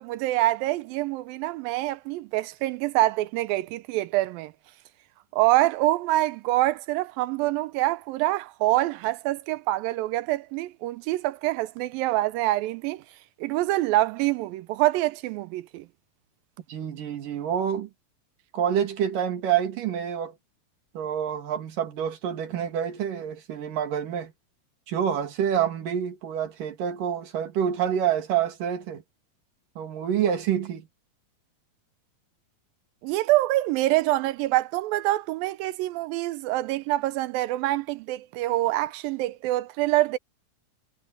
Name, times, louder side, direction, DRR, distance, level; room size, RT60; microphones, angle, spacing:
voice 1, 0.0-4.5 5.3-13.0 13.4-15.9 33.0-40.2, right 17 dB, 85° right, 2.4 m, -25 dB
voice 2, 16.7-17.9 18.5-20.3 20.9-24.3 24.9-29.0 29.8-30.9, right 9 dB, 65° right, 3.8 m, -27 dB
omnidirectional pair, 4.1 m